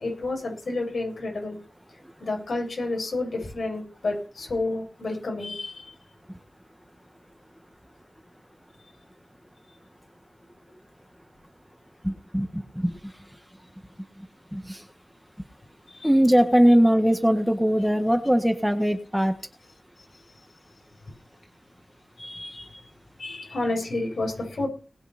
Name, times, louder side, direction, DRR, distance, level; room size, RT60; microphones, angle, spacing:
voice 1, 0.0-1.6 2.2-5.9 15.9-16.1 22.2-22.8 23.2-24.7, left 2 dB, 90° left, 0 dB, 7.6 m, -30 dB
voice 2, 12.0-13.0 14.5-14.8 16.0-19.3, equal, 5° right, 7 dB, 1.5 m, -21 dB
19.5 x 6.9 x 5.8 m, 0.36 s
wide cardioid pair, 100°, 0 cm